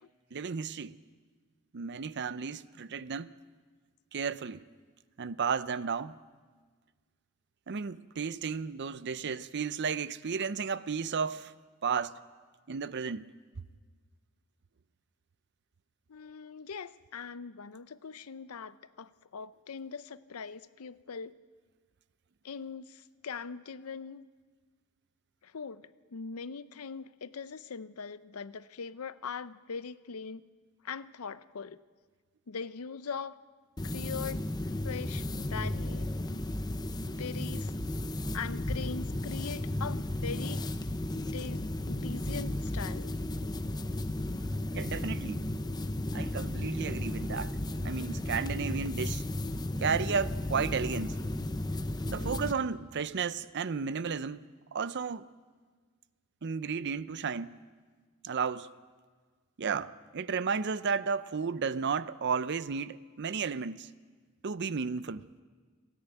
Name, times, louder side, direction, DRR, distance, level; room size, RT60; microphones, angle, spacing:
voice 1, 0.3-1.0 1.7-3.3 4.1-4.6 5.2-6.2 7.7-11.5 11.8-12.2 12.7-13.2 44.7-45.4 46.1-47.6 47.8-49.2 49.8-51.2 52.1-55.3 56.4-57.6 58.2-58.7 59.6-63.9 64.4-65.2, right 5 dB, 55° right, 0.6 m, -33 dB
voice 2, 16.1-21.4 22.4-24.2 25.4-30.4 30.8-31.8 32.5-33.4 33.8-36.5 37.1-37.7 38.3-40.6 41.1-43.1, left 5 dB, 90° left, 0.6 m, -41 dB
sound 1, 33.8-52.5, left 1 dB, 20° left, 0.7 m, -34 dB
29.0 x 10.0 x 9.2 m
head